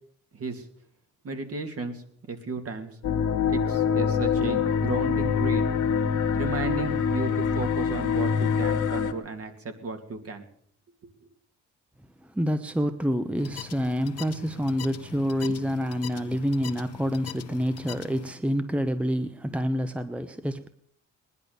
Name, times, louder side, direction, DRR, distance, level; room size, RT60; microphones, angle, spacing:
voice 1, 0.3-0.7 1.2-2.0 2.3-2.9 3.5-5.7 6.4-10.4, right 3 dB, 50° right, 2.5 m, -34 dB
sound 1, 3.0-9.1, left 6 dB, 80° left, 1.6 m, -25 dB
voice 2, 12.2-20.7, equal, 5° right, 0.9 m, -27 dB
sound 2, 13.4-18.3, left 9 dB, 55° left, 1.0 m, -41 dB
19.5 x 11.0 x 6.8 m
cardioid pair, 90°, 30 cm